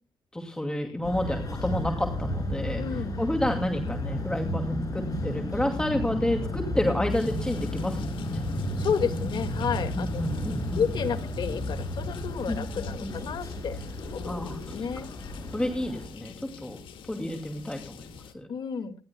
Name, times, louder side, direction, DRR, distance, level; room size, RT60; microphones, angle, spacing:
voice 1, 0.3-8.4 9.9-10.8 12.5-13.1 14.2-14.9 15.5-16.8 17.1-18.5, left 1 dB, 10° left, 4 dB, 2.4 m, -30 dB
sound 1, 1.0-16.1, left 1 dB, 45° left, 7.3 m, -32 dB
voice 2, 2.8-3.1 8.8-10.1 10.7-13.8 14.1-14.4 14.7-15.1 18.5-19.0, left 6 dB, 65° left, 8 dB, 2.0 m, -31 dB
sound 2, 7.1-18.3, left 7 dB, 80° left, 1.8 m, -46 dB
29.0 x 11.5 x 2.2 m, 0.34 s
cardioid pair, 85°, 9 cm